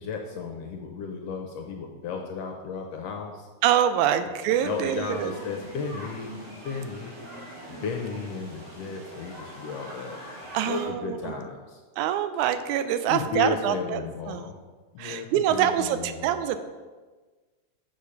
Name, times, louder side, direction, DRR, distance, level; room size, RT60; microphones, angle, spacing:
voice 1, 0.0-3.5 4.2-4.3 4.6-6.3 6.6-7.2 7.7-10.2 10.7-11.8 13.1-14.6 14.9-16.6, left 5 dB, 75° left, 2 dB, 1.6 m, -34 dB
voice 2, 3.6-5.4 10.5-11.4 12.0-14.0 14.3-14.5 15.0-16.6, right 10 dB, 85° right, 10 dB, 2.0 m, -25 dB
sound 1, 4.5-10.8, right 1 dB, 50° right, 3.1 m, -42 dB
6.9 x 6.5 x 5.6 m, 1.3 s
omnidirectional pair, 3.3 m